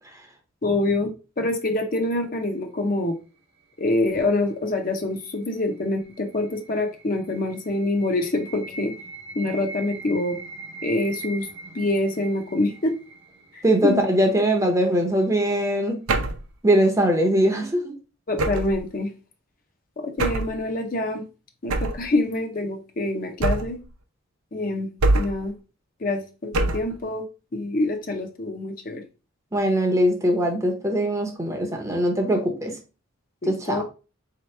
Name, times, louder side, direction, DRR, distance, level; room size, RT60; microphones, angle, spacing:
voice 1, 0.6-1.1 1.4-3.2 3.8-8.9 9.4-10.4 10.8-11.5 11.7-13.0 13.5-14.0 18.3-19.1 20.0-21.2 21.6-23.8 24.5-24.9 25.1-25.5 26.0-27.2 27.5-29.0 33.4-33.8, left 2 dB, 40° left, 0.6 m, -25 dB
sound 1, 5.3-14.3, right 3 dB, 55° right, 0.8 m, -41 dB
voice 2, 13.6-16.0 16.6-17.9 29.5-32.7 33.4-33.8, right 1 dB, 15° right, 0.7 m, -21 dB
sound 2, 16.1-16.5 18.4-18.8 20.2-20.6 21.7-22.1 23.4-23.9 25.0-25.5 26.5-27.0, right 2 dB, 90° right, 0.6 m, -23 dB
4.3 x 2.9 x 3.2 m
head